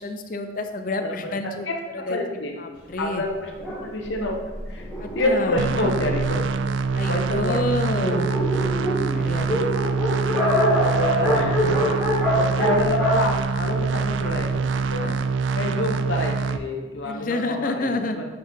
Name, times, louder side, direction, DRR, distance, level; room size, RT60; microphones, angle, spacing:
voice 1, 0.0-1.7 2.1-2.2 2.6-3.2 5.0-5.6 6.9-8.3 9.1-9.6 15.0-15.2 17.0-18.2, left 2 dB, 45° left, 7 dB, 0.5 m, -28 dB
voice 2, 1.0-1.3 1.6-2.6 2.9-4.4 4.7-4.9 5.1-6.7 7.1-7.6 10.8-11.8 12.3-15.2 15.6-18.3, left 1 dB, 75° left, 1 dB, 1.2 m, -28 dB
Dog, 3.6-6.6 7.3-7.4 7.6-7.7 7.9-14.3, equal, 10° right, 2.2 m, -25 dB
sound 1, 5.6-16.6, right 4 dB, 75° right, 0.3 m, -25 dB
8.4 x 4.6 x 3.7 m, 1.2 s
head